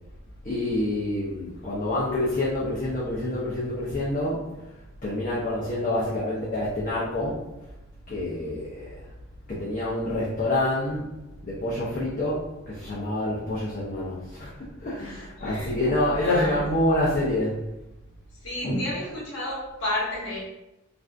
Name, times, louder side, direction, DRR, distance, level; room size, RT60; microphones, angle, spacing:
voice 1, 0.4-4.7 5.0-7.5 8.1-8.9 9.5-11.2 11.4-17.6, left 1 dB, 40° left, -7 dB, 0.5 m, -27 dB
voice 2, 15.0-15.7 16.0-16.6 18.4-20.4, left 1 dB, 75° left, -6 dB, 0.9 m, -31 dB
2.5 x 2.3 x 3.3 m, 0.95 s
head